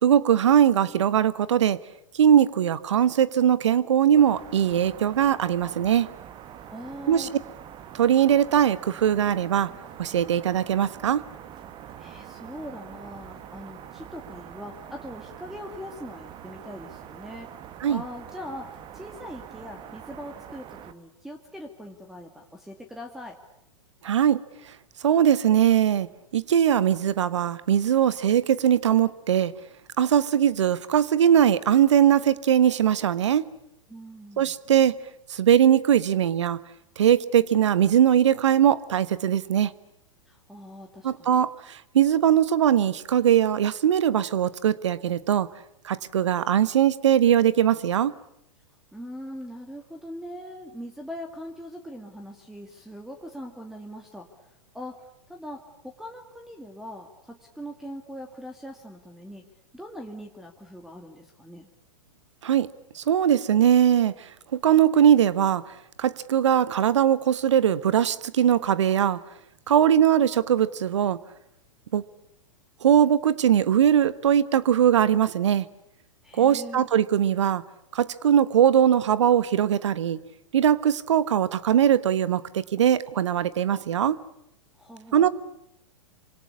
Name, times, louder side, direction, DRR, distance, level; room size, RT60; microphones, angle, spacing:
voice 1, 0.0-1.8 2.1-6.1 7.1-7.3 7.9-9.7 10.0-11.2 17.8-18.0 24.0-24.4 25.0-26.1 26.3-29.5 30.0-33.4 34.4-35.0 35.3-36.6 37.0-39.7 41.0-45.5 45.8-48.1 62.4-62.7 62.9-64.1 64.5-65.6 66.0-69.2 69.7-71.2 71.9-72.0 72.8-75.7 76.4-77.6 77.9-80.2 80.5-84.2 85.1-85.3, right 9 dB, 60° right, 17 dB, 1.3 m, -21 dB
sound 1, 4.2-20.9, right 10 dB, 30° right, 1.6 m, -44 dB
voice 2, 6.7-7.3 12.0-17.5 17.9-23.4 33.9-34.5 40.3-41.3 48.9-54.3 54.7-59.4 59.7-61.7 76.2-76.9 84.8-85.3, equal, ahead, 5 dB, 2.3 m, -41 dB
27.0 x 25.5 x 8.4 m, 0.79 s
figure-of-eight pair, 105°, 17 cm